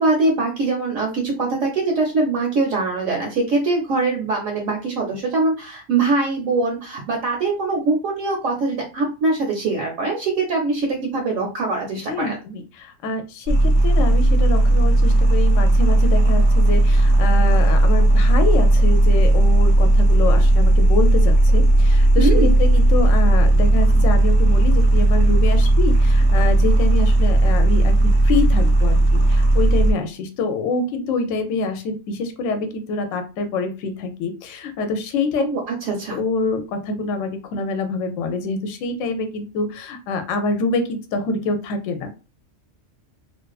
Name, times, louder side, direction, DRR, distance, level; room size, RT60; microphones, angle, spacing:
voice 1, 0.0-12.4 22.2-22.6 35.4-36.2, right 3 dB, 70° right, 1 dB, 1.0 m, -22 dB
voice 2, 12.1-35.4 36.1-42.1, left 3 dB, 70° left, 7 dB, 0.9 m, -26 dB
sound 1, 13.5-29.9, right 1 dB, 45° right, 0.7 m, -15 dB
2.5 x 2.3 x 2.3 m, 0.32 s
omnidirectional pair, 1.4 m